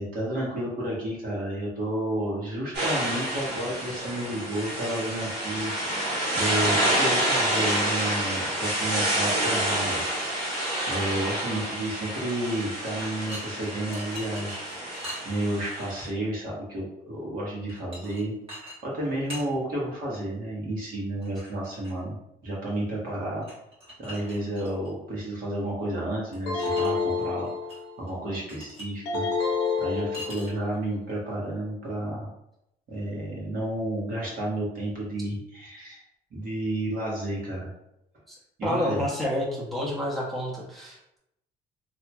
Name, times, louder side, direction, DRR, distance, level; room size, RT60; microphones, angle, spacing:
voice 1, 0.0-10.0 10.8-14.6 14.9-18.3 18.8-22.1 22.4-23.4 24.0-27.5 28.0-29.2 29.8-32.3 32.9-36.0 36.3-37.7 38.6-39.0, right 1 dB, 60° right, -4 dB, 1.2 m, -31 dB
sound 1, 2.7-16.1, right 1 dB, 80° right, 1.4 m, -28 dB
sound 2, 13.0-15.9 17.7-18.2 18.5-18.8 19.0-19.5 21.2-22.0 23.4-24.9 26.3-26.9 27.2-27.8 28.1-28.2 28.5-28.9 30.1-30.7, equal, 35° right, 1.3 m, -42 dB
sound 3, 26.5-28.0 29.1-30.6, left 5 dB, 75° left, 0.6 m, -28 dB
voice 2, 38.6-41.2, left 1 dB, ahead, -5 dB, 0.7 m, -29 dB
2.8 x 2.7 x 2.2 m, 0.83 s
cardioid pair, 110°, 17 cm